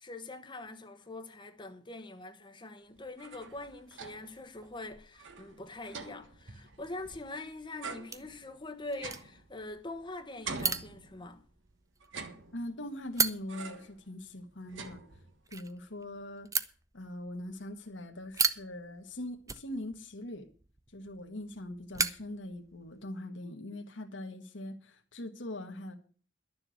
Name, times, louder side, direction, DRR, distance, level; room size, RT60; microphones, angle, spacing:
voice 1, 0.0-11.4, left 2 dB, 25° left, 1.0 m, -44 dB
sound 1, 3.0-4.4 4.8-4.9 5.1-7.4 7.8-10.0 10.4-11.5 12.0-12.9 13.5-14.0 14.3-15.5, right 4 dB, 85° right, 1.5 m, -45 dB
sound 2, 3.5-23.1, right 5 dB, 20° right, 0.6 m, -39 dB
voice 2, 12.5-15.0 15.5-16.5 16.9-20.5 20.9-26.0, left 1 dB, 75° left, 1.6 m, -41 dB
12.0 x 7.1 x 8.2 m
head